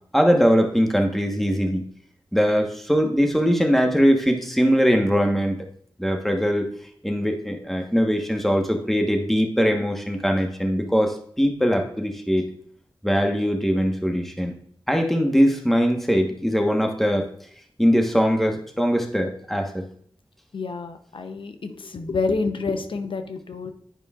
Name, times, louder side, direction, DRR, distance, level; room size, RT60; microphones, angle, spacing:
voice 1, 0.1-1.8 2.3-5.6 6.0-6.7 7.0-12.5 13.0-14.5 14.9-17.3 17.8-19.9, equal, 5° left, 3 dB, 1.2 m, -21 dB
voice 2, 20.5-23.7, left 4 dB, 75° left, 8 dB, 0.7 m, -28 dB
9.2 x 5.0 x 2.4 m, 0.63 s
cardioid pair, 45°, 9 cm